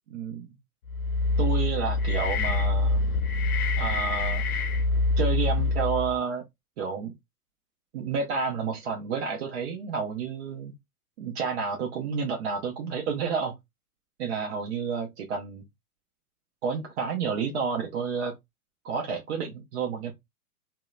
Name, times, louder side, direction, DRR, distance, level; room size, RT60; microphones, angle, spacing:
voice 1, 0.1-0.5 1.4-3.0 3.8-4.4 5.2-6.4 6.8-7.1 7.9-10.7 11.2-13.5 14.2-15.6 16.6-18.3 18.8-20.1, right 5 dB, 45° right, 0.7 m, -30 dB
sound 1, 0.9-6.2, left 3 dB, 70° left, 0.7 m, -25 dB
2.8 x 2.1 x 2.3 m
hypercardioid pair, 120°, 46 cm